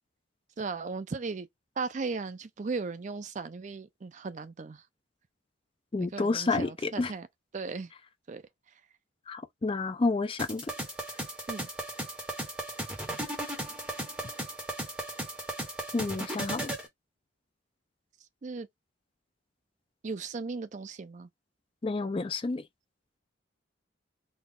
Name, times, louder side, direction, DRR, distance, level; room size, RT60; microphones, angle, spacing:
voice 1, 0.6-1.5 1.8-4.8 6.0-7.3 7.5-7.9 8.3-8.4 11.5-11.7 18.4-18.7 20.0-21.3, right 4 dB, 40° right, 0.4 m, -36 dB
voice 2, 5.9-7.1 9.3-10.7 15.9-16.7 21.8-22.6, left 3 dB, 25° left, 0.4 m, -30 dB
sound 1, 10.4-16.9, right 1 dB, 5° right, 1.2 m, -36 dB
4.1 x 2.3 x 3.6 m
head